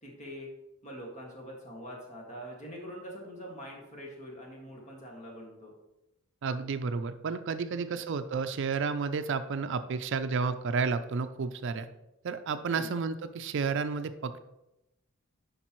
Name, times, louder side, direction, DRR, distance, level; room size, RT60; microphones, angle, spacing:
voice 1, 0.0-0.5 0.8-5.7 7.7-8.0 12.7-12.9, equal, 35° left, -1 dB, 1.8 m, -44 dB
voice 2, 6.4-11.9 12.2-14.4, right 5 dB, 60° right, 10 dB, 0.4 m, -31 dB
9.8 x 5.2 x 3.0 m, 0.93 s
head